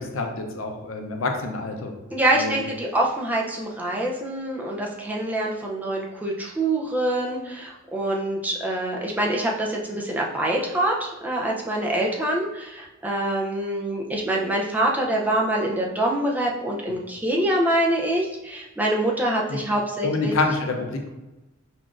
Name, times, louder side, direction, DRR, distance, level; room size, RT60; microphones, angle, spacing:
voice 1, 0.0-1.9 2.4-2.5 19.5-19.6 20.0-21.1, left 3 dB, 80° left, 3 dB, 0.6 m, -27 dB
voice 2, 2.1-20.3, right 1 dB, 10° right, -2 dB, 0.4 m, -25 dB
5.6 x 2.5 x 2.4 m, 1.0 s
head